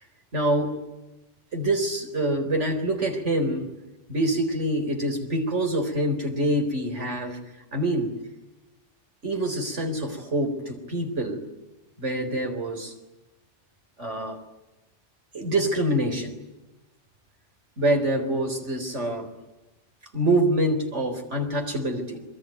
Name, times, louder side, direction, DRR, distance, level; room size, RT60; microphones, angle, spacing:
voice 1, 0.3-0.7 1.5-3.7 4.1-7.4 7.7-8.1 9.2-11.4 12.0-12.9 14.0-14.4 15.3-16.3 17.8-19.3 20.1-22.2, right 1 dB, 80° right, 5 dB, 4.5 m, -25 dB
28.0 x 22.0 x 9.4 m, 1.0 s
omnidirectional pair, 1.2 m